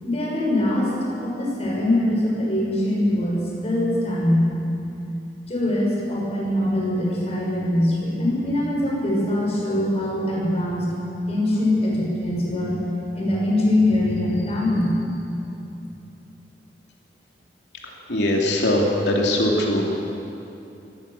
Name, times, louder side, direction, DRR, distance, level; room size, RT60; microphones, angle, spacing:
voice 1, 0.0-4.5 5.5-10.9 11.3-12.7 13.1-15.2, left 1 dB, 35° left, -4 dB, 6.5 m, -22 dB
voice 2, 17.8-19.8, left 1 dB, 80° left, -1 dB, 3.1 m, -21 dB
23.0 x 18.5 x 7.0 m, 2.8 s
head